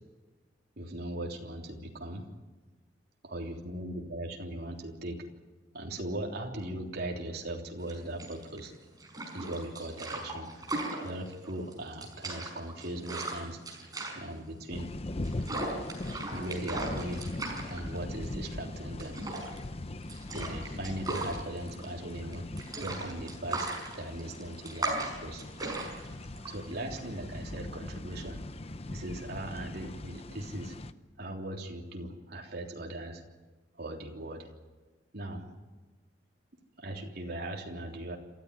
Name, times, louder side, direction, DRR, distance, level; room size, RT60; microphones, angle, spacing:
voice 1, 0.8-2.3 3.2-5.3 5.7-8.7 9.3-10.5 11.0-13.6 14.1-14.9 16.1-17.2 17.7-19.2 20.3-22.4 22.8-23.7 24.0-25.4 26.5-28.4 28.9-30.8 31.2-33.2 33.8-34.5 35.1-35.5 36.8-38.2, right 1 dB, 55° right, 0 dB, 3.4 m, -39 dB
sound 1, 7.8-27.5, right 2 dB, 20° right, 5.2 m, -38 dB
sound 2, 14.7-30.9, left 2 dB, 35° left, 0.8 m, -41 dB
28.0 x 14.0 x 9.9 m, 1.2 s
head